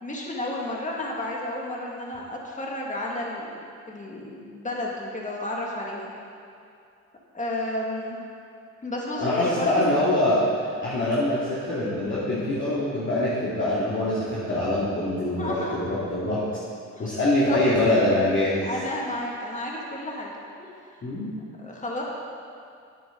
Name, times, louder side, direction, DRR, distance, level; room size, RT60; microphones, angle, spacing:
voice 1, 0.0-3.5 3.9-6.1 7.3-8.2 8.8-9.9 15.4-15.8 16.9-17.0 17.5-17.6 18.6-20.4 21.6-22.0, left 1 dB, 25° left, -3 dB, 2.3 m, -32 dB
voice 2, 9.2-10.5 10.8-16.4 17.0-18.6 21.0-21.3, left 1 dB, 40° left, -9 dB, 2.6 m, -24 dB
12.0 x 9.7 x 4.0 m, 2.4 s
cardioid pair, 90°, 30 cm